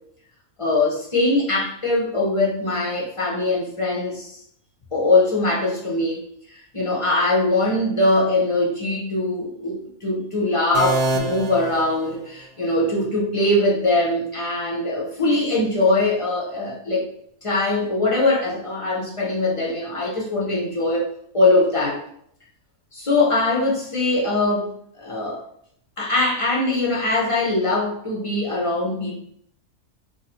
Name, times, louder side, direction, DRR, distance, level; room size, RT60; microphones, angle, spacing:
voice 1, 0.6-4.4 4.9-6.2 6.5-17.1 17.4-21.1 21.3-22.0 22.9-25.4 26.0-29.2, left 2 dB, 45° left, -4 dB, 0.4 m, -22 dB
sound 1, 10.7-12.6, right 2 dB, 75° right, 0.5 m, -26 dB
2.5 x 2.4 x 4.0 m, 0.67 s
omnidirectional pair, 1.5 m